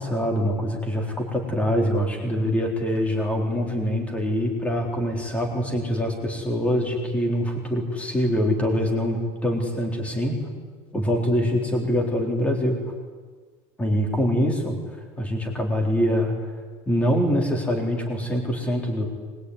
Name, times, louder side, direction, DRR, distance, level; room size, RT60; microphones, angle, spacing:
voice 1, 0.0-10.4 10.9-12.8 13.8-14.8 15.2-16.3 16.9-19.1, equal, 10° left, 2 dB, 4.0 m, -24 dB
24.0 x 22.0 x 9.7 m, 1.5 s
cardioid pair, 180°, 16 cm